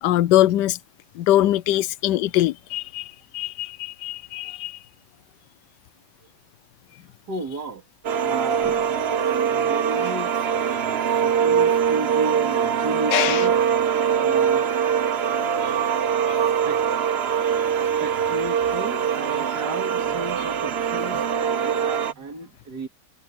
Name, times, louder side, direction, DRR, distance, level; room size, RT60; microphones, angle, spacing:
voice 1, 0.0-0.8 1.2-4.8 13.1-13.4 15.6-15.7, left 14 dB, 75° left, 1.2 m, -22 dB
voice 2, 7.3-7.8 8.2-13.6 14.2-14.8 16.7-16.8 17.8-22.9, right 2 dB, 65° right, 3.2 m, -33 dB
sound 1, 8.0-22.1, right 8 dB, 45° right, 0.9 m, -23 dB
omnidirectional pair, 1.9 m